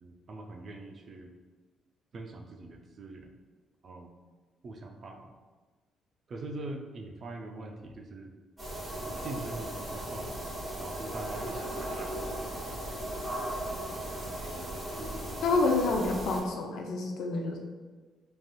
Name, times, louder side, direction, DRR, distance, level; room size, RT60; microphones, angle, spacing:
voice 1, 0.0-1.3 2.1-3.3 3.8-4.1 4.6-5.3 6.3-8.3 9.0-10.4 10.8-12.2 14.4-15.6, right 2 dB, 50° right, 3 dB, 0.4 m, -43 dB
sound 1, 8.6-16.4, right 1 dB, 15° right, 1.2 m, -37 dB
voice 2, 15.4-17.6, left 3 dB, 85° left, 2 dB, 0.4 m, -28 dB
3.2 x 2.6 x 2.2 m, 1.3 s
cardioid pair, 110°, 0 cm